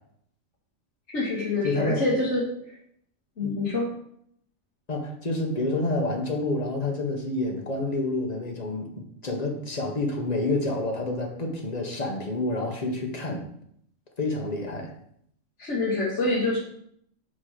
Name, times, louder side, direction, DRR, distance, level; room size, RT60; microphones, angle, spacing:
voice 1, 1.1-2.5 3.4-3.9 15.6-16.6, left 2 dB, 55° left, -7 dB, 1.9 m, -26 dB
voice 2, 1.6-2.0 3.4-3.5 4.9-8.9 9.2-13.4 14.2-14.9, left 2 dB, 30° left, 1 dB, 1.3 m, -28 dB
5.9 x 5.8 x 5.0 m, 0.69 s
omnidirectional pair, 1.5 m